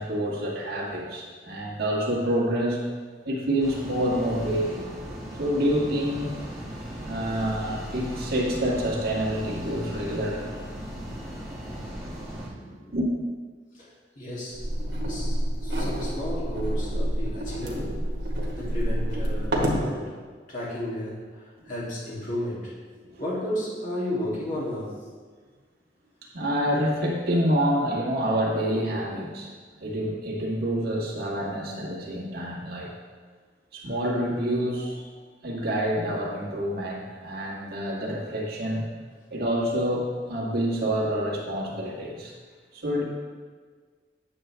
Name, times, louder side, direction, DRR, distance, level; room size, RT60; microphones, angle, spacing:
voice 1, 0.0-2.8 3.3-5.0 5.4-6.3 7.0-10.6 12.9-13.1 23.0-23.2 26.3-29.5 29.8-32.9 33.7-35.0 35.4-38.9 39.3-42.3 42.7-43.0, equal, 55° right, -4 dB, 1.8 m, -27 dB
sound 1, 3.6-12.5, equal, ahead, 2.4 m, -37 dB
voice 2, 11.1-11.5 12.4-13.0 13.7-14.6 15.0-18.0 18.5-20.0 20.5-22.7 23.2-24.9, left 1 dB, 45° left, -7 dB, 2.6 m, -33 dB
sound 2, 14.5-19.9, equal, 85° right, 1.5 m, -28 dB
9.0 x 7.3 x 3.4 m, 1.5 s
head